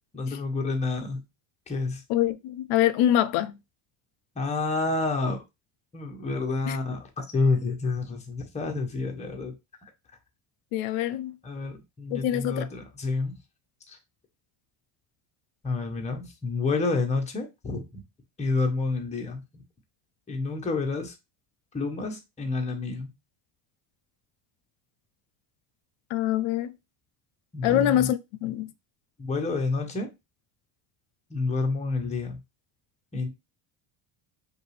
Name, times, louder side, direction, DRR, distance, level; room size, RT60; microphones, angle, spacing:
voice 1, 0.1-1.2 1.7-2.0 4.4-5.4 5.9-9.5 9.8-9.9 11.4-13.4 13.9-14.0 15.6-18.0 18.4-19.6 20.3-21.1 21.7-23.1 27.5-28.1 29.2-30.1 31.3-32.4 33.1-33.3, left 3 dB, 15° left, 0.8 m, -29 dB
voice 2, 2.1-3.6 6.7-6.8 10.7-11.3 12.1-12.7 26.1-26.7 27.6-28.7, left 12 dB, 85° left, 0.5 m, -25 dB
5.3 x 2.4 x 3.2 m
cardioid pair, 160°, 48 cm